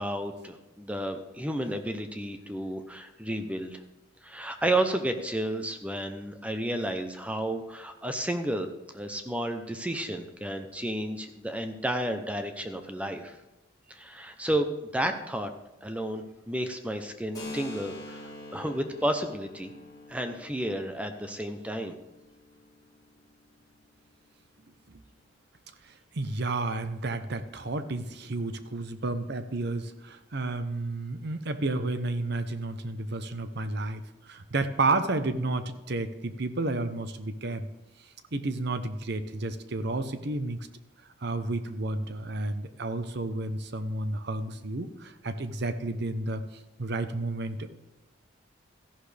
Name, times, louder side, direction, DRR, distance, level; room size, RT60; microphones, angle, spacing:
voice 1, 0.0-3.8 4.2-13.4 13.9-15.5 15.8-19.7 20.1-22.0, right 1 dB, 5° right, 6 dB, 0.7 m, -32 dB
Keyboard (musical), 17.3-24.7, left 2 dB, 20° left, 4.5 m, -46 dB
voice 2, 26.1-37.7 38.3-40.6 41.2-46.4 46.8-47.7, right 2 dB, 55° right, 10 dB, 0.8 m, -31 dB
14.0 x 11.5 x 3.4 m, 1.0 s
head